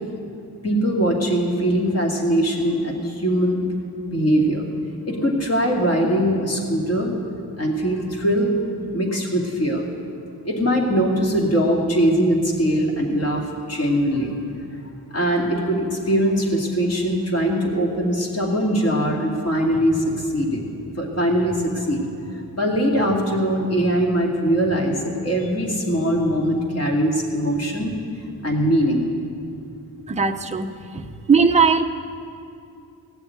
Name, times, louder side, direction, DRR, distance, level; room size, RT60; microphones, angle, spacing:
voice 1, 0.6-3.6 4.1-4.7 5.1-7.1 7.6-8.5 8.9-9.8 10.4-14.4 15.1-20.7 21.0-22.0 22.6-27.9 28.4-29.1, equal, 40° left, 0 dB, 2.4 m, -21 dB
voice 2, 30.1-30.7 30.9-31.8, right 5 dB, 15° right, 5 dB, 0.6 m, -18 dB
17.0 x 7.0 x 9.4 m, 2.6 s
cardioid pair, 120°, 40 cm